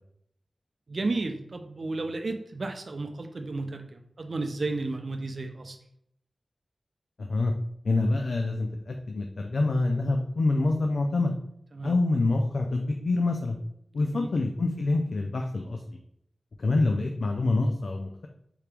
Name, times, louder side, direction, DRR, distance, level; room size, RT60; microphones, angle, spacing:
voice 1, 0.9-5.8 11.7-12.0 13.9-14.3, right 3 dB, 60° right, 5 dB, 0.5 m, -33 dB
voice 2, 7.2-7.5 7.8-11.3 11.8-13.6 13.9-15.8 16.6-18.3, left 2 dB, 75° left, 3 dB, 0.4 m, -26 dB
4.7 x 2.9 x 3.4 m, 0.73 s
wide cardioid pair, 55°, 0 cm